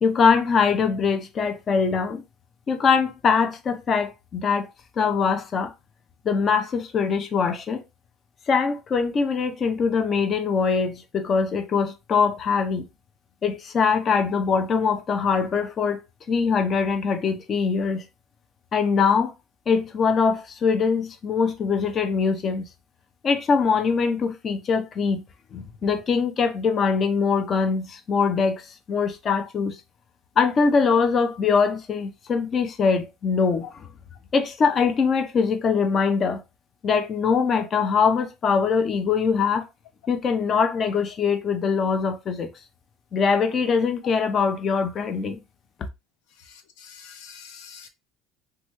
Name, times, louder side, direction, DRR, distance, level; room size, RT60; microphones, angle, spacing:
voice 1, 0.0-2.2 2.7-4.7 5.0-5.7 6.2-7.8 8.5-12.8 13.4-16.0 16.3-18.0 18.7-19.3 19.7-22.6 23.2-25.2 25.5-28.6 28.9-29.8 30.4-33.9 34.3-36.4 36.8-39.7 40.1-42.5 43.1-45.4, left 5 dB, 40° left, 0.5 m, -22 dB
voice 2, 46.5-47.9, left 7 dB, 85° left, 0.5 m, -46 dB
3.0 x 2.3 x 3.0 m
supercardioid pair, 110°, 0 cm